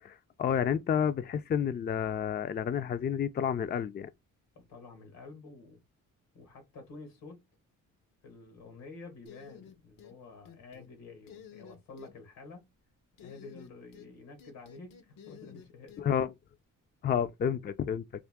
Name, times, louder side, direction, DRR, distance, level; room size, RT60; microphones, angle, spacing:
voice 1, 0.0-4.1 16.0-16.3 17.0-18.0, left 8 dB, 30° left, 0.4 m, -30 dB
voice 2, 4.6-5.8 6.3-7.4 8.2-12.7 13.2-16.0, left 3 dB, 90° left, 1.7 m, -50 dB
sound 1, 9.3-10.2 10.5-10.9 11.3-12.1 13.2-14.1 14.4-16.0, left 8 dB, 75° left, 0.8 m, -52 dB
3.6 x 2.5 x 3.5 m
cardioid pair, 75°, 33 cm